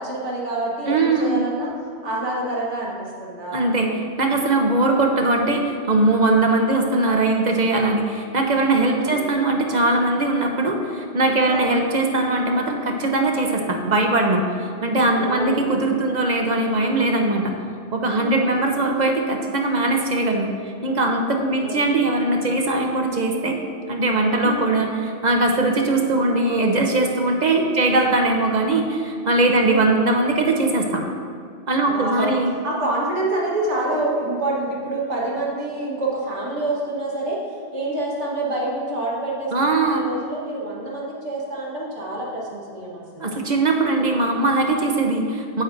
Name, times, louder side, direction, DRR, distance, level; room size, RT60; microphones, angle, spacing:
voice 1, 0.0-1.7 2.0-3.7 6.7-7.0 9.0-9.4 11.5-11.8 15.1-15.7 18.2-18.5 21.6-22.1 24.4-24.7 27.8-28.0 29.6-29.9 31.9-37.4 37.7-43.3 44.0-44.1, right 2 dB, 85° right, -4 dB, 1.7 m, -27 dB
voice 2, 0.9-1.5 3.5-17.5 17.9-20.5 20.8-23.6 23.9-31.0 31.7-32.5 39.5-40.0 43.2-45.6, right 2 dB, 45° right, 2 dB, 0.8 m, -20 dB
9.4 x 8.5 x 2.6 m, 2.2 s
omnidirectional pair, 1.2 m